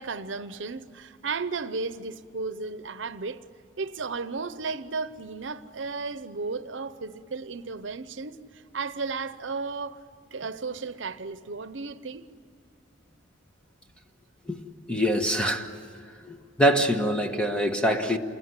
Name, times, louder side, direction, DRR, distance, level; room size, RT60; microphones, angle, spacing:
voice 1, 0.0-3.4 3.8-10.0 10.3-12.2, right 4 dB, 75° right, 0.8 m, -34 dB
voice 2, 14.5-15.7 16.2-18.2, equal, 5° left, 1.4 m, -25 dB
29.0 x 21.0 x 9.7 m
head